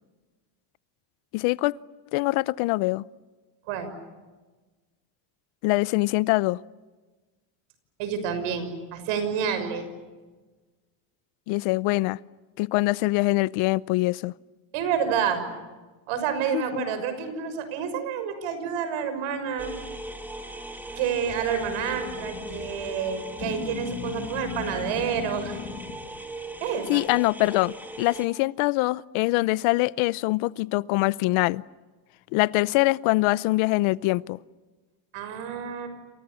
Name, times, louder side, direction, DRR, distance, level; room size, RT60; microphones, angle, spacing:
voice 1, 1.3-1.8 2.1-3.0 5.6-6.6 11.5-12.2 12.6-14.3 16.5-16.9 26.9-31.6 32.3-34.4, left 21 dB, 75° left, 0.8 m, -24 dB
voice 2, 8.0-9.9 14.7-15.4 16.1-19.8 21.0-25.6 26.6-27.0 35.1-35.9, right 7 dB, 75° right, 6.4 m, -29 dB
sound 1, 19.6-28.3, right 1 dB, 5° right, 2.5 m, -38 dB
sound 2, 21.2-26.4, left 8 dB, 40° left, 3.0 m, -38 dB
28.5 x 28.5 x 7.1 m
cardioid pair, 140°, 49 cm